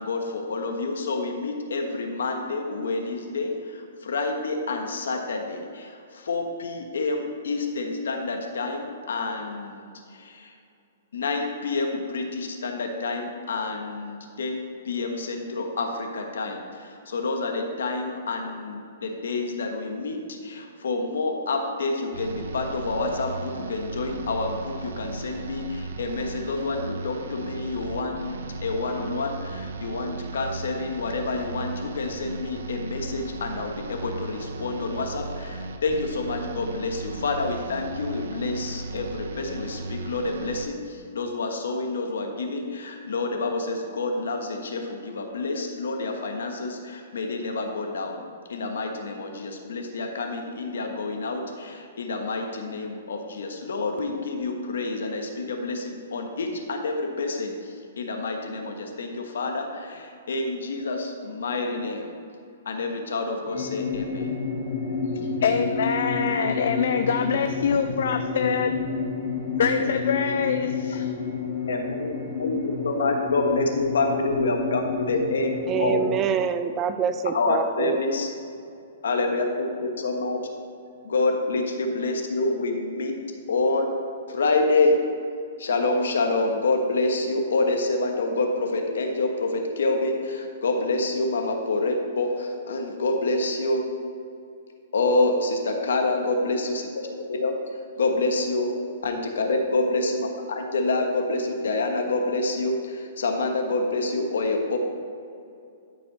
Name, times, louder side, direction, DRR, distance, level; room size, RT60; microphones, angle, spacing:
voice 1, 0.0-10.5 11.1-48.2 48.5-62.2 62.6-64.4 69.8-69.9 71.7-75.5 75.8-76.0 77.3-78.3 79.0-80.4 81.0-83.2 83.5-83.9 84.3-85.0 85.6-93.9 94.9-97.5 98.0-98.7 99.0-100.3 100.6-104.8, left 3 dB, 90° left, 3 dB, 1.4 m, -27 dB
sound 1, 22.1-40.7, right 3 dB, 80° right, 0.8 m, -36 dB
sound 2, 63.5-76.2, left 4 dB, 45° left, 1.7 m, -30 dB
voice 2, 65.0-68.7 69.6-71.1, left 6 dB, 65° left, 7 dB, 0.4 m, -25 dB
voice 3, 75.7-78.0, right 7 dB, 20° right, 10 dB, 0.4 m, -25 dB
13.0 x 5.4 x 4.3 m, 2.5 s
hypercardioid pair, 160°, 0 cm